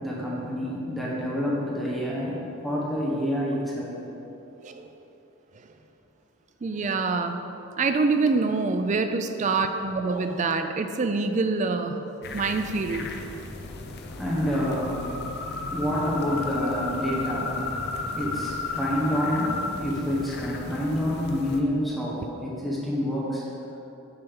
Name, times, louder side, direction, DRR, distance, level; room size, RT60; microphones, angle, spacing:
voice 1, 0.0-3.9 14.2-15.0 15.6-17.5 18.2-23.4, equal, ahead, -7 dB, 1.2 m, -28 dB
voice 2, 6.6-7.4 7.8-12.0 12.3-13.1, right 4 dB, 35° right, 7 dB, 0.3 m, -25 dB
sound 1, 12.2-21.6, left 3 dB, 45° left, 0.5 m, -34 dB
6.7 x 4.4 x 5.5 m, 3.0 s
head